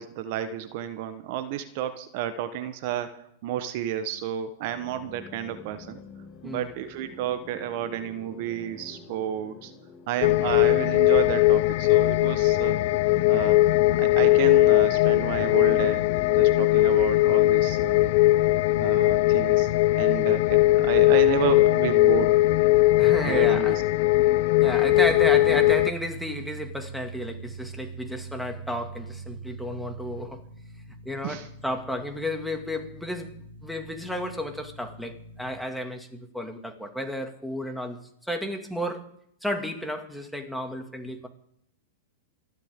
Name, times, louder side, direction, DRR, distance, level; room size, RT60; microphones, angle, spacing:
voice 1, 0.0-6.0 6.4-9.7 10.1-12.8 13.3-13.6 13.9-18.1 18.8-19.7 19.9-22.4 23.2-23.8 31.2-31.5, right 10 dB, 55° right, 1.3 m, -31 dB
sound 1, 4.6-19.9, left 4 dB, 30° left, 5.6 m, -47 dB
sound 2, 10.2-25.9, left 17 dB, 55° left, 0.6 m, -20 dB
voice 2, 23.0-23.8 24.6-30.4 31.1-33.3 33.6-38.0 38.3-39.1 39.4-41.3, left 1 dB, ahead, 2.3 m, -32 dB
sound 3, 24.9-35.6, right 4 dB, 80° right, 3.4 m, -42 dB
28.5 x 11.5 x 3.8 m
hypercardioid pair, 115°, 0 cm